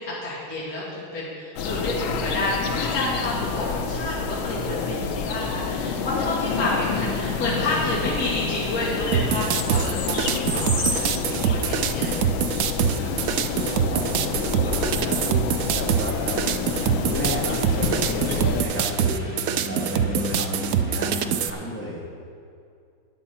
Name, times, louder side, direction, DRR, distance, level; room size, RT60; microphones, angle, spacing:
voice 1, 0.0-12.1 21.2-21.6, left 1 dB, 55° left, -9 dB, 3.3 m, -29 dB
sound 1, 1.6-18.6, left 6 dB, 90° left, 1.6 m, -28 dB
sound 2, 3.0-21.3, left 1 dB, 25° left, 2.9 m, -38 dB
sound 3, 9.1-21.5, right 8 dB, 90° right, 0.7 m, -24 dB
voice 2, 13.0-22.1, equal, 5° left, -5 dB, 2.1 m, -33 dB
14.5 x 10.0 x 4.3 m, 2.4 s
omnidirectional pair, 2.1 m